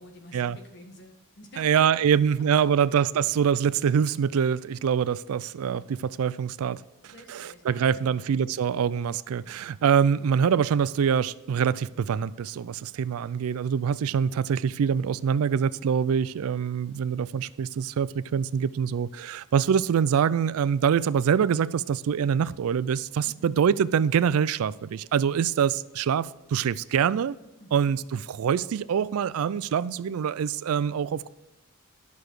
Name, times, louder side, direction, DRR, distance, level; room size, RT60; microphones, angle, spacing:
voice 1, 0.0-3.0 7.0-8.4 23.2-23.5 27.6-27.9, left 1 dB, 50° left, 1.5 m, -50 dB
voice 2, 1.6-6.8 7.3-27.4 27.7-31.3, right 7 dB, 80° right, 0.3 m, -25 dB
11.0 x 6.9 x 4.7 m
head